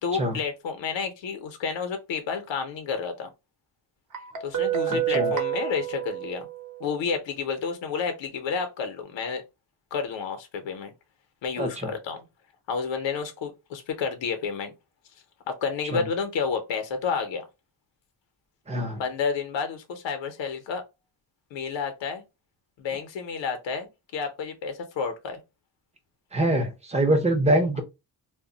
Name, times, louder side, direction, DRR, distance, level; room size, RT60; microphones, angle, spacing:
voice 1, 0.0-3.3 4.4-6.5 6.8-9.4 9.9-10.9 11.4-12.2 12.7-14.7 15.5-17.5 19.0-20.8 21.5-22.2 22.8-25.4, left 5 dB, 85° left, 0.7 m, -30 dB
Guitar, 4.1-6.9, right 10 dB, 45° right, 0.8 m, -28 dB
voice 2, 4.9-5.3 11.6-11.9 15.9-16.0 18.7-19.0 26.3-27.8, right 1 dB, 15° right, 0.6 m, -24 dB
2.2 x 2.0 x 3.7 m
wide cardioid pair, 130°, 44 cm